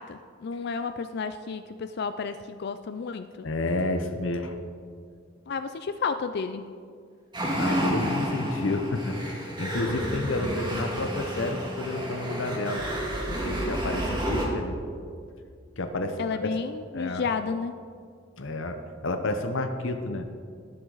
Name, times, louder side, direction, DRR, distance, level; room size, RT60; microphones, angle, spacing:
voice 1, 0.0-3.5 5.5-6.7 16.2-17.8, left 5 dB, 60° left, 10 dB, 0.4 m, -32 dB
voice 2, 3.4-4.6 7.6-9.2 9.6-12.8 13.3-14.8 15.8-16.5 16.9-17.2 18.4-20.3, left 2 dB, 80° left, 7 dB, 0.8 m, -30 dB
sound 1, 7.3-14.5, equal, 25° right, 2.0 m, -30 dB
18.5 x 7.8 x 4.0 m, 2.2 s
head